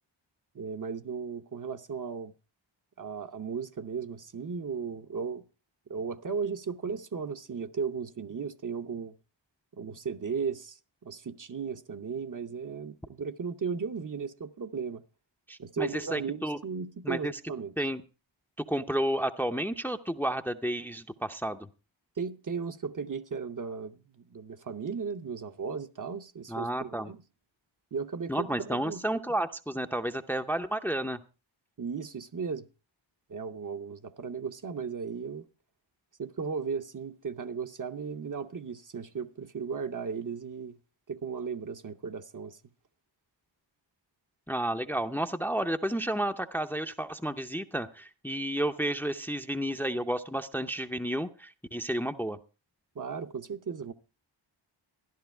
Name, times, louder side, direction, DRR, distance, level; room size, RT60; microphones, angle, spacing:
voice 1, 0.5-2.3 3.0-5.4 5.9-9.1 9.7-15.0 15.6-17.7 22.2-27.2 27.9-29.0 31.8-32.7 33.3-35.4 36.2-40.8 41.1-42.6 52.9-53.9, right 5 dB, 45° right, 0.8 m, -36 dB
voice 2, 15.5-16.6 17.0-17.3 17.8-18.0 18.7-21.7 26.5-27.1 28.3-31.2 44.5-52.4, right 1 dB, 5° left, 0.6 m, -31 dB
13.5 x 11.5 x 4.4 m
wide cardioid pair, 115°, 45 cm